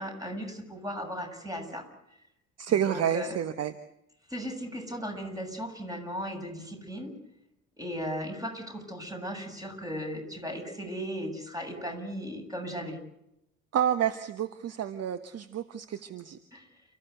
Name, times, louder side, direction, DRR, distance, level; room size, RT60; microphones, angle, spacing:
voice 1, 0.0-1.9 2.8-3.4 4.3-7.2 7.8-13.0 16.5-16.7, equal, 10° right, 5 dB, 7.8 m, -36 dB
voice 2, 2.6-3.7 13.7-16.4, right 9 dB, 35° right, 11 dB, 1.3 m, -29 dB
30.0 x 15.0 x 8.1 m, 0.81 s
figure-of-eight pair, 60°, 41 cm